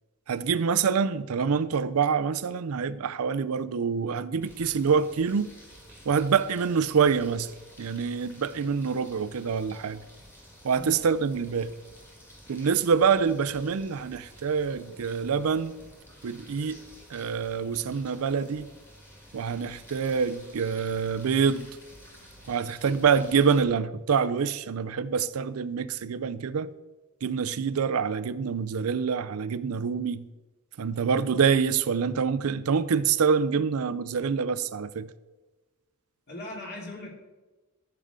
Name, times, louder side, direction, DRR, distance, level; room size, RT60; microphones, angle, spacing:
voice 1, 0.3-5.5 6.1-7.5 7.8-10.0 10.6-11.7 12.5-15.7 16.2-16.8 17.1-18.7 19.3-21.7 22.5-26.7 27.2-30.2 30.8-35.1, right 6 dB, 90° right, 0.5 m, -26 dB
sound 1, 4.4-23.6, equal, 10° left, 1.8 m, -51 dB
voice 2, 36.3-37.1, left 1 dB, 50° left, 2.5 m, -39 dB
13.5 x 6.8 x 3.7 m
head